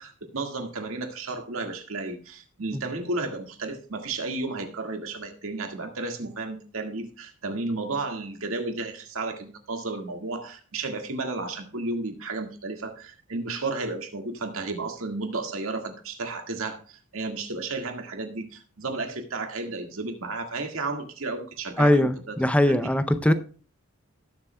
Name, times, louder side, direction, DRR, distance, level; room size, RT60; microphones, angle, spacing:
voice 1, 0.0-22.4 22.7-22.8 23.3-23.4, right 3 dB, 85° right, 1.8 m, -33 dB
voice 2, 21.8-23.3, left 1 dB, 5° left, 0.5 m, -21 dB
19.0 x 7.2 x 2.2 m
head